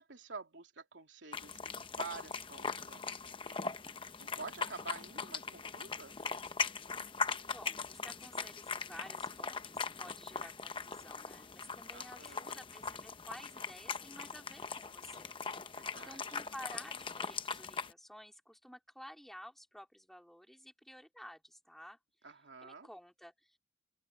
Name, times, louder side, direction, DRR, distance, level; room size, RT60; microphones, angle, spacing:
voice 1, 0.0-3.6 3.9-6.2 11.9-12.6 15.7-16.2 22.2-22.9, right 4 dB, 75° right, 3.1 m, -49 dB
sound 1, 1.3-17.9, left 5 dB, 25° left, 0.8 m, -40 dB
voice 2, 7.5-15.7 16.0-22.0 22.6-23.6, equal, ahead, 3.7 m, -53 dB
open air
head